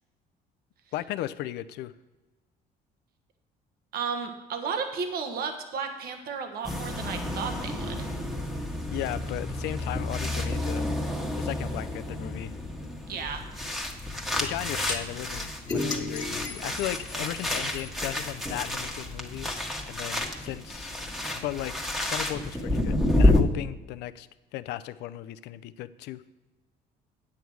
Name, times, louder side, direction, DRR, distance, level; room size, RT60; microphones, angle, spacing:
voice 1, 0.9-1.9 8.9-10.9 11.4-12.5 14.4-21.0 21.3-21.7 22.1-24.3 24.5-26.2, left 14 dB, 85° left, 14 dB, 0.5 m, -36 dB
voice 2, 3.9-8.1 13.1-13.4, right 5 dB, 65° right, 6 dB, 1.3 m, -33 dB
sound 1, 6.6-23.4, left 1 dB, ahead, 1.4 m, -30 dB
sound 2, 14.9-15.0 15.7-17.9, left 3 dB, 20° left, 1.8 m, -33 dB
9.4 x 8.5 x 4.6 m, 1.2 s
cardioid pair, 110°, 17 cm